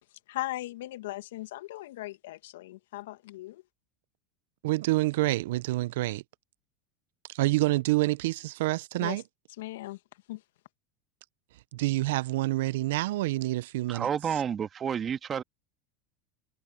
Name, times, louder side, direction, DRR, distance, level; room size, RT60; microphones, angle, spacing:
voice 1, 0.3-3.6 9.0-9.2 9.6-10.0 10.3-10.4, left 17 dB, 75° left, 2.0 m, -38 dB
voice 2, 4.6-6.2 7.3-9.2 11.7-14.1, right 19 dB, 70° right, 0.8 m, -27 dB
voice 3, 13.9-15.4, right 8 dB, 30° right, 2.1 m, -30 dB
hypercardioid pair, 90°, 0 cm